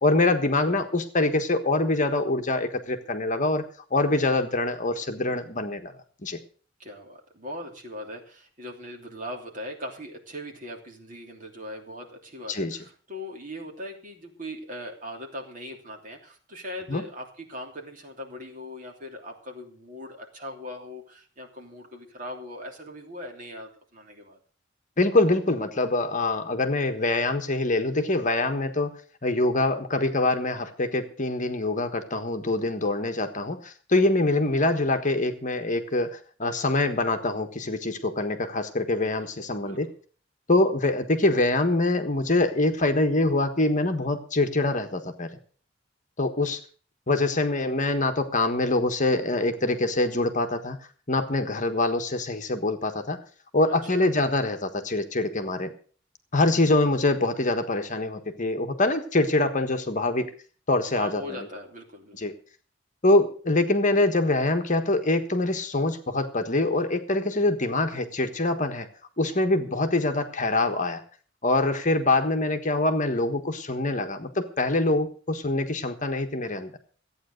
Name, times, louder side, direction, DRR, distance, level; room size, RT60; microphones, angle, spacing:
voice 1, 0.0-3.6 3.9-5.9 6.2-6.4 12.5-12.8 16.9-17.0 25.0-39.9 40.5-45.3 46.2-46.6 47.1-50.8 51.1-53.2 53.5-55.7 56.3-60.3 60.7-61.4 62.2-62.3 63.0-68.9 69.2-71.0 71.4-76.7, left 2 dB, 40° left, 7 dB, 1.4 m, -24 dB
voice 2, 6.8-24.4 39.0-39.3 39.6-39.8 53.6-54.1 60.9-62.2, equal, 45° right, 2 dB, 3.1 m, -40 dB
14.5 x 9.0 x 6.5 m, 0.42 s
head